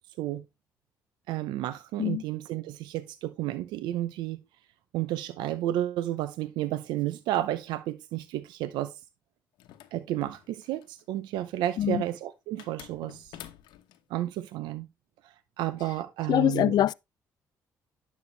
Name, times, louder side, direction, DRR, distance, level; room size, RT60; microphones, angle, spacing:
voice 1, 1.3-4.4 4.9-8.9 9.9-13.4 14.1-14.9 15.2-16.7, right 13 dB, 85° right, 0.7 m, -32 dB
sound 1, 9.6-11.0 12.6-14.0, left 12 dB, 85° left, 1.0 m, -48 dB
voice 2, 16.3-16.9, left 12 dB, 70° left, 0.4 m, -24 dB
11.0 x 6.5 x 3.3 m
supercardioid pair, 65°, 7 cm